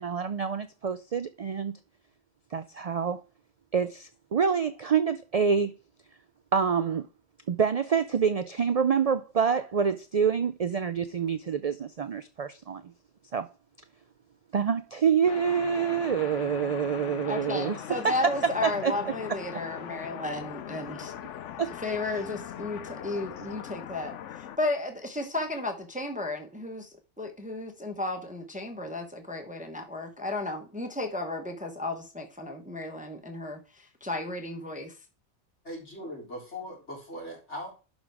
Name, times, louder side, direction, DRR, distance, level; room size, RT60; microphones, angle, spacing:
voice 1, 0.0-1.7 2.5-3.2 3.7-5.7 6.5-7.1 7.5-12.8 13.3-13.5 14.5-18.2 18.6-18.9 21.6-21.7, right 6 dB, 55° right, 0.4 m, -27 dB
sound 1, 15.3-24.6, left 10 dB, 85° left, 1.0 m, -40 dB
voice 2, 17.3-21.1 21.8-26.9 27.2-34.9, left 2 dB, 5° right, 1.0 m, -34 dB
voice 3, 35.7-37.7, left 1 dB, 70° left, 4.3 m, -39 dB
11.5 x 3.9 x 4.7 m
omnidirectional pair, 1.2 m